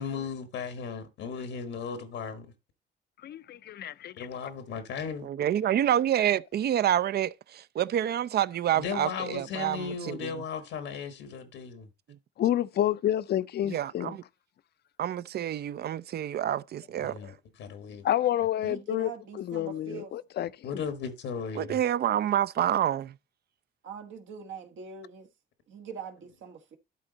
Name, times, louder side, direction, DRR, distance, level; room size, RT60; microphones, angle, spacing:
voice 1, 0.0-2.5 4.2-5.3 8.7-11.9 17.0-17.3 17.6-18.1 20.6-21.8, left 6 dB, 85° left, 1.3 m, -36 dB
voice 2, 3.2-4.3 12.4-14.2 18.0-19.1 19.5-20.8, left 12 dB, 55° left, 0.5 m, -29 dB
voice 3, 5.2-10.3 13.7-14.2 15.0-17.3 21.6-23.1, right 11 dB, 55° right, 0.4 m, -28 dB
voice 4, 18.6-20.1 23.8-25.3 25.7-26.8, right 6 dB, 75° right, 1.4 m, -42 dB
12.5 x 4.1 x 3.9 m
cardioid pair, 90°, 20 cm